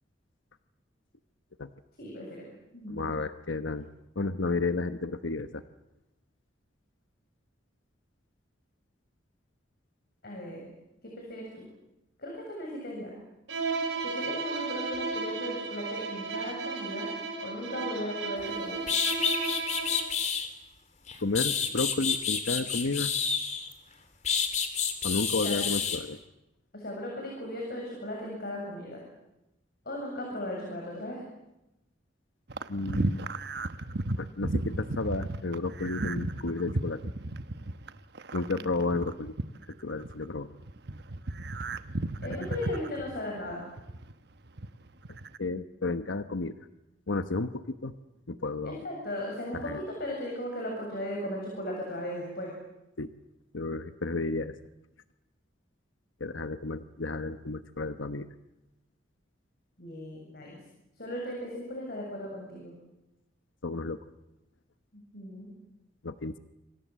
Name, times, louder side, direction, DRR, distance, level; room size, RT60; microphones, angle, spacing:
voice 1, 2.0-2.4 2.7-3.0 10.2-10.7 11.0-11.6 12.2-13.1 14.0-17.1 17.4-18.9 25.4-25.6 26.7-29.0 29.9-31.2 38.6-38.7 42.2-43.7 48.6-52.5 59.8-60.6 61.0-62.7 64.9-65.5, left 1 dB, 55° left, -1 dB, 7.6 m, -37 dB
voice 2, 2.9-3.9 4.2-5.6 21.2-23.1 25.0-26.2 32.7-33.3 34.2-37.0 38.3-39.3 39.8-40.5 42.3-42.5 45.4-46.5 47.1-47.9 48.3-48.8 49.5-49.8 53.0-53.1 53.5-54.6 56.2-58.3 63.6-64.0 66.0-66.4, left 3 dB, 90° left, 10 dB, 1.1 m, -32 dB
Bowed string instrument, 13.5-20.2, right 4 dB, 80° right, 6.4 m, -34 dB
sound 1, 18.5-18.6 18.9-20.5 21.1-23.7 24.2-26.0, left 6 dB, 40° left, 3.3 m, -29 dB
sound 2, 32.5-40.3 40.6-44.1 44.5-45.4, right 2 dB, 60° right, 1.1 m, -34 dB
28.5 x 25.0 x 7.6 m, 0.91 s
head